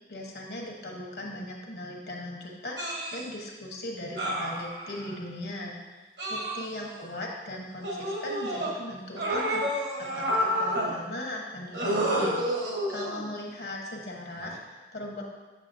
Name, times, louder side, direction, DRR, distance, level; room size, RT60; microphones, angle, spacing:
voice 1, 0.1-6.0 6.3-15.2, left 1 dB, 65° left, -1 dB, 1.2 m, -39 dB
sound 1, 2.8-3.2 4.2-5.1 6.2-7.0 7.8-8.7 9.2-10.9 11.7-13.3 14.4-14.6, equal, 80° right, 1.4 m, -29 dB
7.3 x 6.9 x 2.7 m, 1.2 s
head